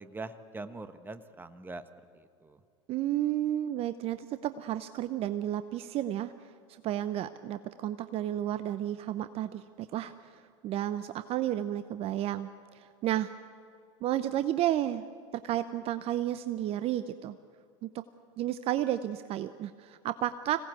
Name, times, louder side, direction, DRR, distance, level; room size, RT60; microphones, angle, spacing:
voice 1, 0.0-1.8 2.1-2.6, right 3 dB, 15° right, 11 dB, 1.3 m, -43 dB
voice 2, 2.9-6.3 6.8-10.1 10.6-13.3 14.0-15.0 15.3-17.4 17.8-17.9 18.4-20.6, right 12 dB, 40° right, 12 dB, 0.7 m, -32 dB
25.5 x 17.5 x 8.3 m, 2.2 s
hypercardioid pair, 85°, 15 cm